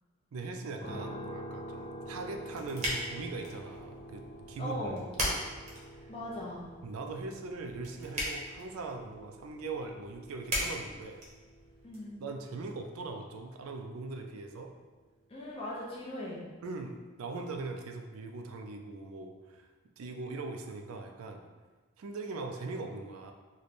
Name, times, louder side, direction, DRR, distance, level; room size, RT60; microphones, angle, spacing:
voice 1, 0.3-5.4 6.0-6.1 6.8-11.2 12.2-14.7 16.6-19.7 20.0-21.4 22.0-23.3, right 3 dB, 85° right, 4 dB, 0.4 m, -40 dB
sound 1, 0.8-14.8, equal, 50° left, 1.3 m, -48 dB
sound 2, 2.0-12.0, equal, 30° right, 0.8 m, -40 dB
voice 2, 4.6-5.1 6.1-6.7 11.8-12.2 15.3-16.4, left 1 dB, 25° left, -5 dB, 0.6 m, -39 dB
3.2 x 2.2 x 4.0 m, 1.3 s
head